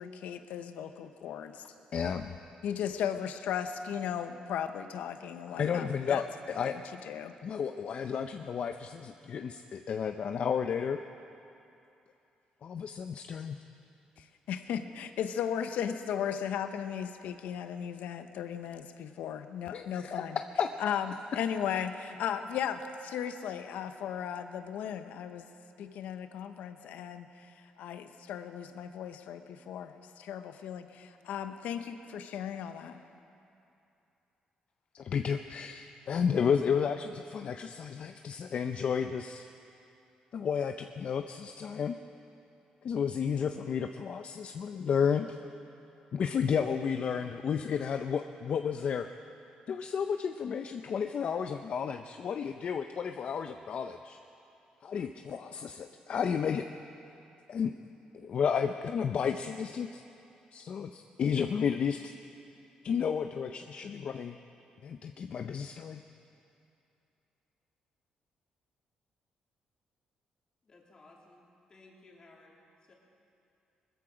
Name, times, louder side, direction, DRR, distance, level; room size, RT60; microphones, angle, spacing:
voice 1, 0.0-1.6 2.6-6.2 6.7-7.3 14.2-20.4 20.8-25.5 25.8-27.5 27.8-33.0, left 8 dB, 85° left, 9 dB, 0.9 m, -36 dB
voice 2, 1.9-2.3 5.5-6.8 7.4-11.0 12.6-13.6 19.7-20.7 34.9-39.5 40.3-42.0 42.8-45.4 46.1-49.1 49.7-54.2 54.8-56.7 57.5-57.7 58.1-60.0 60.5-62.1 62.8-64.4 64.8-66.0, left 7 dB, 55° left, 7 dB, 0.5 m, -32 dB
voice 3, 70.6-72.9, left 2 dB, 35° left, -2 dB, 2.9 m, -58 dB
20.5 x 14.0 x 5.0 m, 2.7 s
cardioid pair, 110°, 3 cm